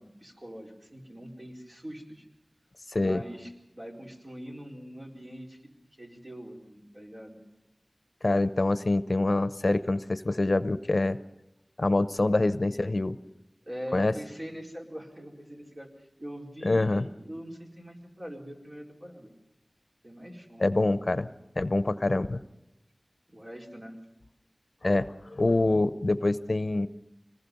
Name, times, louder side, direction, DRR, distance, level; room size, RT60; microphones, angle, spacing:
voice 1, 0.0-2.3 3.0-7.4 13.7-19.3 20.0-20.7 23.3-24.0, equal, 45° right, -1 dB, 4.5 m, -43 dB
voice 2, 2.9-3.2 8.2-11.2 11.8-13.2 13.9-14.1 16.6-17.0 20.6-21.3 21.6-22.4 24.8-26.9, left 2 dB, 65° left, 13 dB, 0.7 m, -25 dB
26.0 x 20.0 x 5.4 m, 0.88 s
wide cardioid pair, 45°, 0 cm